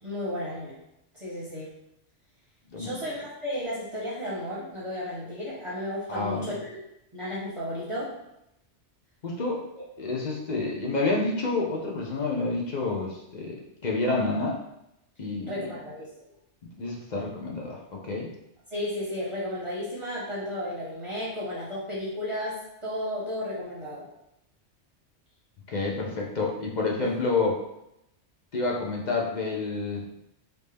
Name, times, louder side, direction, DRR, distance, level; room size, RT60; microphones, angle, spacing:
voice 1, 0.0-0.7 1.1-1.7 2.8-6.8 7.1-8.1 9.8-9.9 15.4-16.1 18.7-24.1 27.0-27.1, left 1 dB, 30° right, -7 dB, 0.8 m, -33 dB
voice 2, 6.1-6.5 9.2-9.6 10.0-13.6 13.8-14.6 15.2-15.5 16.8-18.3 25.7-27.6 28.5-30.0, left 3 dB, 45° left, -2 dB, 0.7 m, -28 dB
3.4 x 2.8 x 3.3 m, 0.82 s
omnidirectional pair, 1.2 m